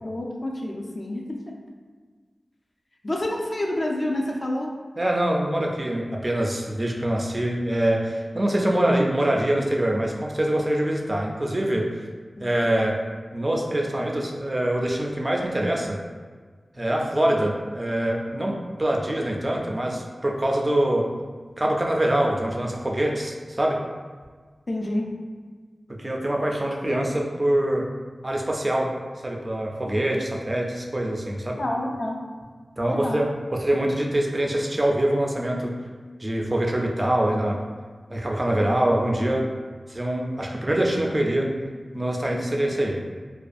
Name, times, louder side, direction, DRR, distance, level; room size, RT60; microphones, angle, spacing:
voice 1, 0.0-1.6 3.0-4.7 24.7-25.1 31.6-32.2 32.9-33.2, left 1 dB, 40° left, -1 dB, 0.4 m, -28 dB
voice 2, 5.0-11.9 12.4-13.0 13.3-16.0 16.8-21.1 21.6-23.8 25.9-27.9 28.2-28.9 29.2-31.6 32.8-35.7 36.2-37.6 38.1-39.5 39.9-41.6 41.9-43.0, right 1 dB, 30° right, 0 dB, 0.3 m, -24 dB
2.5 x 2.3 x 2.4 m, 1.5 s
wide cardioid pair, 60°, 0 cm